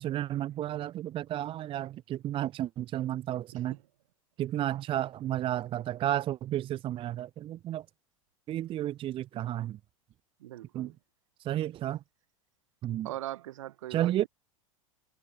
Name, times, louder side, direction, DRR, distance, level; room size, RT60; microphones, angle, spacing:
voice 1, 0.0-3.8 4.4-7.8 8.5-9.8 10.7-10.9 11.4-12.0 12.8-13.1 13.9-14.2, right 12 dB, 30° right, 0.7 m, -32 dB
voice 2, 10.4-11.0 13.0-14.3, right 14 dB, 65° right, 7.8 m, -41 dB
figure-of-eight pair, 90°, 18 cm